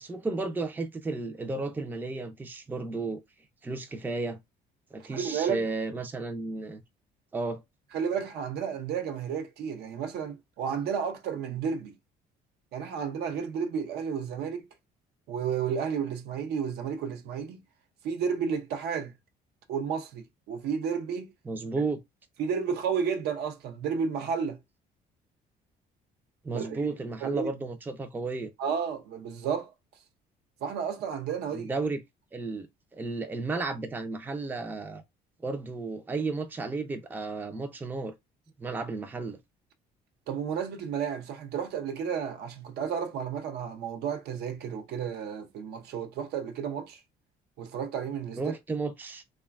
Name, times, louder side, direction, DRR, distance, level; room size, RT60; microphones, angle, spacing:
voice 1, 0.0-3.2 3.6-4.4 4.9-6.8 7.3-7.6 21.5-22.0 26.4-28.5 31.5-32.0 32.3-32.7 32.9-35.0 35.4-38.1 38.6-39.4 48.4-49.2, right 3 dB, 10° right, 0.4 m, -33 dB
voice 2, 5.1-5.6 7.9-12.0 12.7-14.7 15.3-17.6 18.0-19.1 19.7-21.3 22.4-24.6 26.5-26.8 27.2-27.5 28.6-29.7 30.6-31.7 40.3-47.0 47.6-48.6, right 7 dB, 70° right, 0.6 m, -32 dB
3.0 x 2.2 x 2.3 m
cardioid pair, 110°, 17 cm